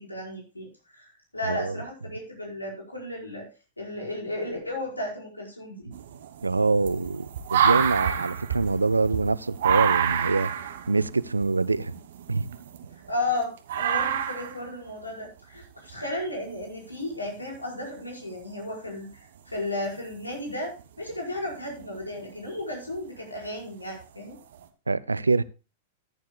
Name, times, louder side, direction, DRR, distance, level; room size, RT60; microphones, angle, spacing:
voice 1, 0.1-0.7 1.0-3.4 3.8-5.8 13.1-19.1 19.5-24.4, left 1 dB, 85° left, 5.0 m, -34 dB
voice 2, 1.5-1.8 6.4-10.5 10.9-11.9 12.3-12.5 24.9-25.4, right 3 dB, 85° right, 0.5 m, -25 dB
sound 1, 5.9-13.3 13.7-14.6 15.9-16.0 17.3-17.4 20.1-20.3 20.8-21.1 21.7-22.3 22.9-23.0 24.0-24.1 24.5-24.6, right 8 dB, 60° right, 1.3 m, -28 dB
14.0 x 10.0 x 2.2 m
figure-of-eight pair, 95°, 0 cm